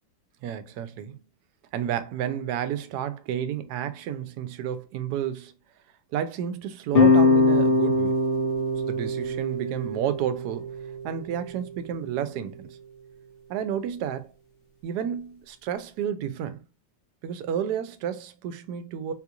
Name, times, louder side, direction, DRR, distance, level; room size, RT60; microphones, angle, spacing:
voice 1, 0.4-1.2 1.7-5.5 6.1-8.2 8.9-10.7 11.0-12.8 13.5-14.3 14.8-16.6 17.2-19.1, right 9 dB, 75° right, 1.0 m, -31 dB
sound 1, 6.9-12.0, left 3 dB, 70° left, 0.5 m, -23 dB
3.8 x 2.4 x 2.8 m
omnidirectional pair, 1.9 m